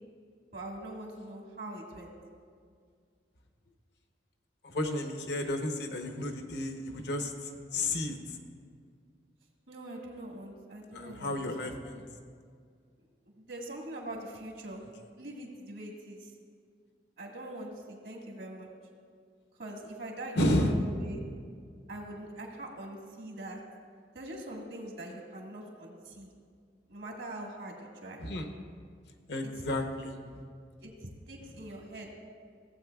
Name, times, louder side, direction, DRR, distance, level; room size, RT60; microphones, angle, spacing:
voice 1, 0.5-2.1 9.7-11.3 11.6-11.7 13.4-14.8 15.2-16.3 17.2-18.7 19.6-21.2 21.9-23.6 24.1-26.3 26.9-28.2 29.4-29.5 30.8-32.1, right 1 dB, 70° right, -1 dB, 1.7 m, -43 dB
voice 2, 4.6-8.4 10.9-12.1 20.4-20.8 28.2-28.5 29.3-30.2, left 1 dB, 65° left, 5 dB, 0.8 m, -32 dB
16.0 x 8.0 x 2.3 m, 2.1 s
head